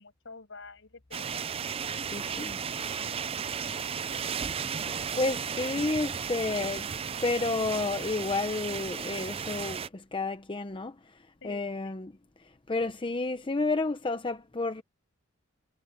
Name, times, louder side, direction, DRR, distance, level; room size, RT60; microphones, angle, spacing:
voice 1, 0.0-1.3 2.1-2.3 2.7-5.1 11.4-11.9, left 3 dB, 65° left, 6.4 m, -51 dB
sound 1, 1.1-9.9, right 7 dB, 30° right, 0.4 m, -34 dB
voice 2, 2.1-2.6 5.2-6.9 7.2-10.9 11.4-12.1 12.7-14.8, left 3 dB, 25° left, 0.7 m, -30 dB
head